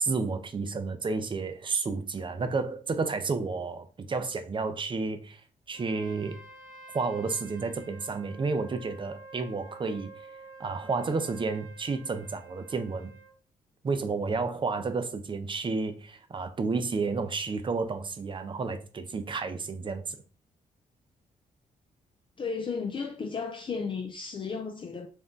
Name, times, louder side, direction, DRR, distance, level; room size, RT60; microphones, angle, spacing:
voice 1, 0.0-5.4 5.7-6.4 6.9-10.1 10.6-13.1 13.8-20.2, right 4 dB, 35° right, 0.6 m, -31 dB
Trumpet, 5.7-13.4, right 3 dB, 80° right, 0.7 m, -50 dB
voice 2, 22.4-25.1, left 5 dB, 35° left, 0.4 m, -34 dB
2.6 x 2.2 x 3.6 m
cardioid pair, 65°, 14 cm